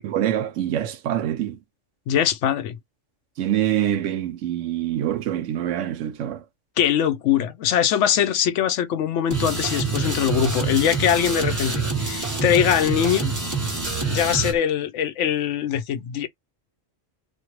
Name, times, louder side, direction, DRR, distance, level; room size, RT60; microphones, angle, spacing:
voice 1, 0.0-1.6 3.4-6.4, right 11 dB, 75° right, 0.9 m, -25 dB
voice 2, 2.1-2.8 6.8-13.3 14.0-16.3, left 9 dB, 75° left, 0.9 m, -22 dB
sound 1, 9.3-14.5, right 3 dB, 15° right, 1.0 m, -26 dB
3.2 x 2.2 x 2.8 m
omnidirectional pair, 1.3 m